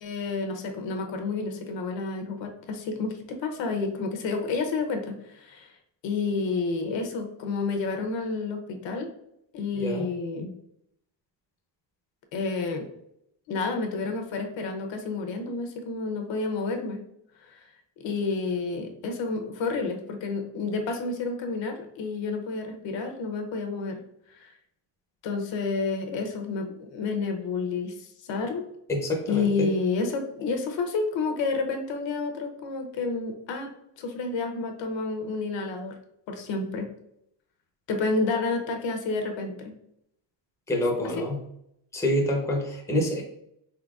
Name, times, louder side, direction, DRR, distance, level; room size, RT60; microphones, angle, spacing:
voice 1, 0.0-5.7 6.0-9.1 9.5-10.5 12.3-12.8 13.5-17.0 17.4-17.6 18.0-24.0 24.3-24.5 25.2-28.7 29.3-33.7 34.0-35.9 36.3-36.9 37.9-39.7, left 4 dB, 70° left, 4 dB, 0.8 m, -30 dB
voice 2, 9.7-10.1 28.9-29.7 40.7-41.4 41.9-43.2, left 1 dB, 5° left, 0 dB, 0.7 m, -27 dB
4.2 x 3.9 x 2.3 m, 0.76 s
cardioid pair, 150°, 46 cm